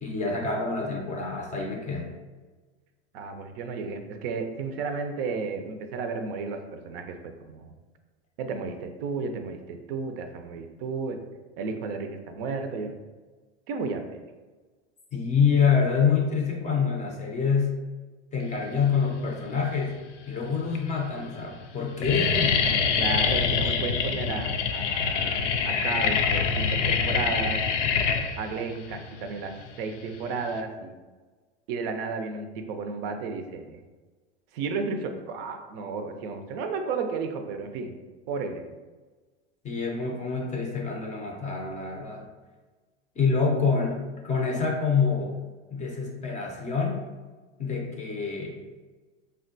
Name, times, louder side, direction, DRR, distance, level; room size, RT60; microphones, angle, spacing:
voice 1, 0.0-2.1 15.1-17.8 18.3-20.0 20.3-22.5 39.6-42.3 43.2-45.4 45.7-47.0 47.6-48.6, left 5 dB, 20° left, 0 dB, 0.5 m, -26 dB
voice 2, 3.1-7.7 8.4-11.2 11.6-12.9 13.7-14.2 22.2-27.6 28.4-30.9 31.7-33.8 34.5-37.9 38.3-38.6, right 4 dB, 55° right, 6 dB, 0.5 m, -33 dB
sound 1, 19.4-20.0 20.7-20.8 21.0-21.4 21.7-30.6, left 6 dB, 85° left, 0.5 m, -25 dB
3.4 x 2.2 x 2.5 m, 1.3 s
hypercardioid pair, 100°, 36 cm